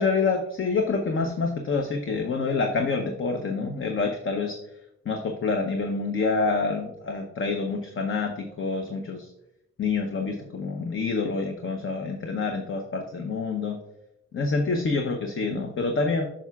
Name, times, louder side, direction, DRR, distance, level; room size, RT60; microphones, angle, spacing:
voice 1, 0.0-4.6 5.1-9.3 9.8-13.8 14.3-16.3, left 4 dB, 45° left, 4 dB, 0.8 m, -27 dB
9.0 x 5.9 x 2.3 m, 0.85 s
cardioid pair, 80°, 29 cm